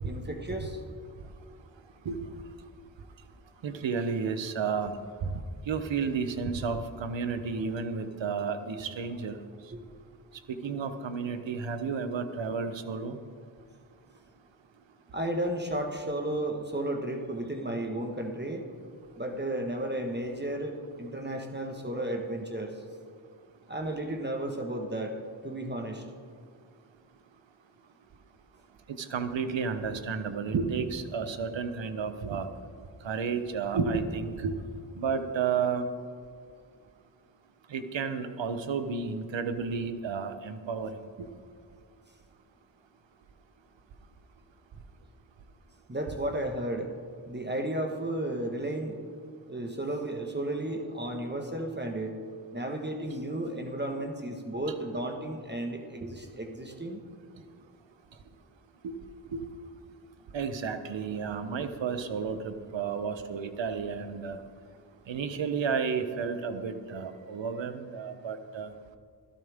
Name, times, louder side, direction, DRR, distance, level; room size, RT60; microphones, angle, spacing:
voice 1, 0.0-0.8 9.7-9.8 15.1-18.7 19.2-22.7 23.7-25.2 25.4-26.0 45.9-46.9 47.3-49.0 49.5-52.2 52.5-57.0, right 1 dB, 25° right, 3 dB, 1.6 m, -33 dB
voice 2, 3.6-4.9 5.7-9.4 10.6-13.2 29.0-32.5 33.0-34.6 35.0-35.8 37.7-40.9 41.2-41.3 58.8-58.9 59.3-59.4 60.3-64.4 65.1-68.7, right 5 dB, 75° right, 9 dB, 1.1 m, -32 dB
16.5 x 13.5 x 3.6 m, 2.1 s
cardioid pair, 45°, 45 cm